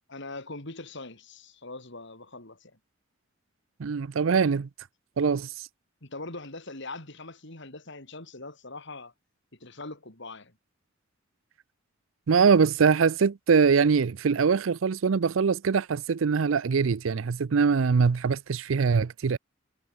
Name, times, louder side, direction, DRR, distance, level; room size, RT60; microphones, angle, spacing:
voice 1, 0.1-2.8 6.0-9.1 9.5-10.5, left 2 dB, 65° left, 5.1 m, -42 dB
voice 2, 3.8-4.7 5.2-5.7 12.3-19.4, right 5 dB, 75° right, 0.5 m, -23 dB
head